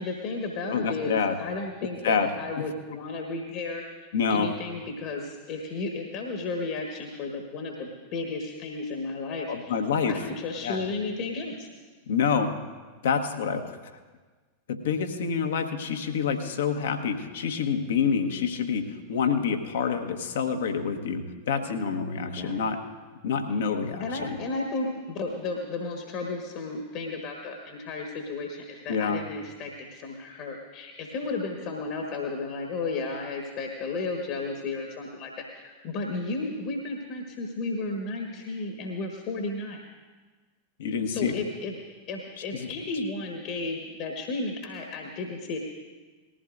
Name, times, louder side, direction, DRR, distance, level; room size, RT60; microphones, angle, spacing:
voice 1, 0.0-3.8 4.3-9.8 10.1-11.7 22.4-22.6 23.5-23.7 24.0-39.8 41.1-41.8 42.1-45.6, left 3 dB, 45° left, 2 dB, 1.5 m, -33 dB
voice 2, 0.7-1.3 2.0-2.3 2.6-2.7 4.1-4.5 9.5-10.2 10.6-10.8 12.1-12.5 13.0-13.6 14.7-22.8 23.2-24.3 28.9-29.2 40.8-41.3 42.5-42.7, left 6 dB, 60° left, 6 dB, 1.2 m, -27 dB
20.0 x 15.0 x 2.6 m, 1.4 s
figure-of-eight pair, 90°, 0 cm